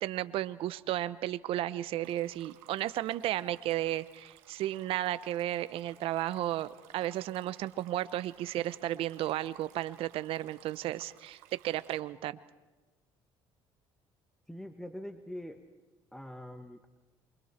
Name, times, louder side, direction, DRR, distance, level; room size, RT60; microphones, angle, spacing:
voice 1, 0.0-12.4, right 14 dB, 70° right, 15 dB, 1.0 m, -34 dB
Stream, 2.0-12.0, right 13 dB, 90° right, 1.8 m, -58 dB
voice 2, 14.5-15.6 16.1-16.9, left 1 dB, 5° left, 7 dB, 1.6 m, -43 dB
28.0 x 24.5 x 4.4 m, 1.2 s
supercardioid pair, 80°, 10 cm